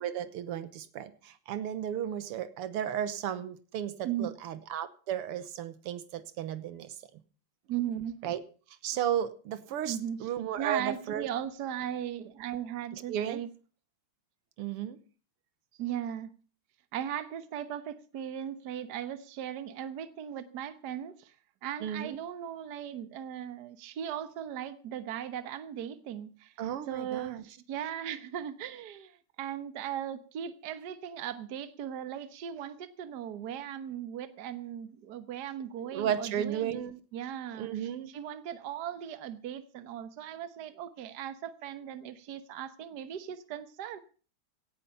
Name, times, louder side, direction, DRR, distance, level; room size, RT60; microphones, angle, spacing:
voice 1, 0.0-6.9 8.2-8.4 8.8-11.3 12.9-13.4 14.6-15.0 21.8-22.2 26.6-27.4 35.9-37.0 37.6-38.1, right 10 dB, 90° right, 2.0 m, -34 dB
voice 2, 7.7-8.2 9.8-10.2 10.6-13.5 15.8-16.3 16.9-21.3 21.6-26.5 26.9-36.9 37.1-37.7 38.1-44.0, right 10 dB, 55° right, 1.5 m, -38 dB
17.0 x 10.0 x 5.6 m
omnidirectional pair, 2.4 m